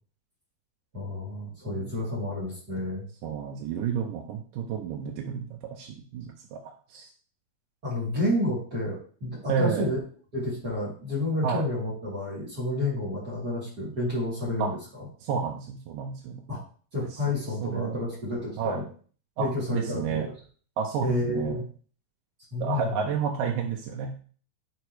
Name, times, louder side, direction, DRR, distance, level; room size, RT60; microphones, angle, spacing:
voice 1, 0.9-3.1 7.8-10.0 10.3-15.0 16.5-16.6 16.9-18.8 19.4-20.2 21.0-21.6 22.5-23.0, left 1 dB, 30° right, -7 dB, 3.3 m, -30 dB
voice 2, 3.2-7.1 9.5-9.9 11.4-11.7 14.6-14.7 15.2-16.4 17.6-18.0 18.6-18.8 19.4-20.3 20.8-21.6 22.6-24.2, right 7 dB, 90° right, 0 dB, 2.5 m, -31 dB
9.5 x 4.6 x 3.1 m, 0.42 s
omnidirectional pair, 3.6 m